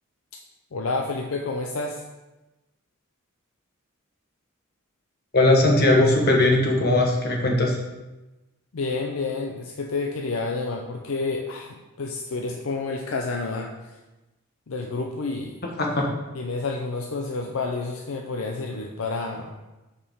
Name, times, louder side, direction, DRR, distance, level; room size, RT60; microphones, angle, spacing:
voice 1, 0.7-2.0 8.7-14.0 14.7-15.6 16.3-19.5, left 3 dB, 70° left, 2 dB, 0.6 m, -29 dB
voice 2, 5.3-7.8 15.8-16.1, left 2 dB, 50° left, 0 dB, 1.3 m, -19 dB
8.4 x 4.9 x 3.6 m, 1.1 s
head